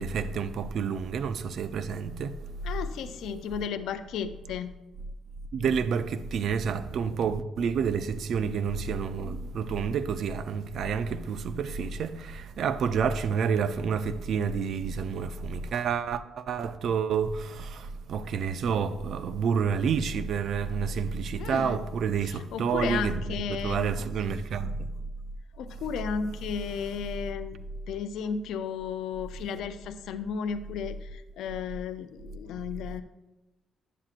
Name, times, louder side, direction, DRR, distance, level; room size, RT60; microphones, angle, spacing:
voice 1, 0.0-2.4 5.5-23.2 23.5-24.7, right 6 dB, 65° right, 0.4 m, -29 dB
voice 2, 2.6-4.7 21.4-21.8 22.2-23.9 25.5-27.6 27.9-33.0, left 7 dB, 80° left, 0.4 m, -34 dB
9.9 x 7.3 x 2.5 m
cardioid pair, 90°, 0 cm